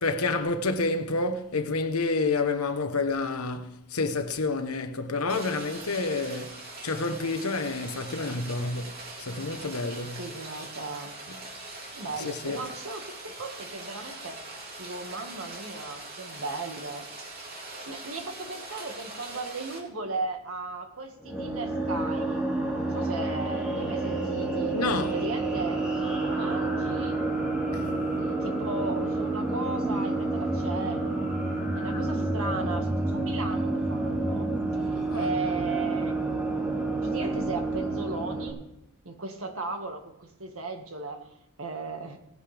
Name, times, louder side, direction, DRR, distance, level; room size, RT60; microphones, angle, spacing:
voice 1, 0.0-8.9 9.2-10.2 12.2-12.6 24.7-25.1 27.7-27.9 31.9-32.0 35.0-35.3, left 3 dB, 80° left, 1.2 m, -29 dB
Rain, 5.3-19.8, right 2 dB, 45° right, 3.1 m, -42 dB
voice 2, 10.2-11.1 11.9-14.4 14.8-17.1 17.4-17.5 17.9-22.4 22.7-24.8 25.1-25.8 26.2-27.2 28.2-31.3 31.7-36.2 37.0-38.6 39.0-41.3 41.6-42.2, right 3 dB, 65° right, 2.0 m, -36 dB
sound 1, 21.2-38.5, right 2 dB, 5° right, 2.8 m, -29 dB
18.0 x 11.0 x 3.5 m
head